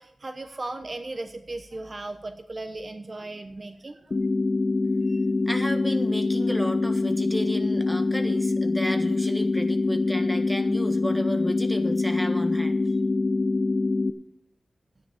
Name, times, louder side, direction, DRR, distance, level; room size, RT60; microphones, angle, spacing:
voice 1, 0.0-4.1, right 2 dB, 35° right, 8 dB, 0.9 m, -37 dB
sound 1, 4.1-14.1, left 3 dB, 40° left, 0.7 m, -24 dB
voice 2, 5.1-12.8, equal, ahead, 5 dB, 1.5 m, -33 dB
13.0 x 9.9 x 5.1 m, 0.81 s
wide cardioid pair, 120°, 0 cm